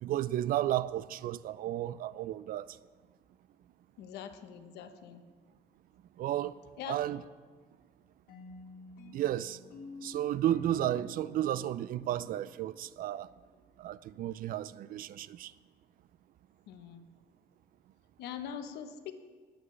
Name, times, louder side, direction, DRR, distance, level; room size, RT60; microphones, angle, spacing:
voice 1, 0.0-2.7 6.2-6.5 6.9-7.2 9.1-9.6 10.0-13.3 13.8-15.5, right 12 dB, 55° right, 0.4 m, -33 dB
voice 2, 4.0-5.2 6.8-7.0 16.7-17.1 18.2-19.1, left 9 dB, 80° left, 1.0 m, -43 dB
sound 1, 8.3-13.4, left 3 dB, 55° left, 2.0 m, -50 dB
20.5 x 8.7 x 3.2 m
cardioid pair, 110°, 17 cm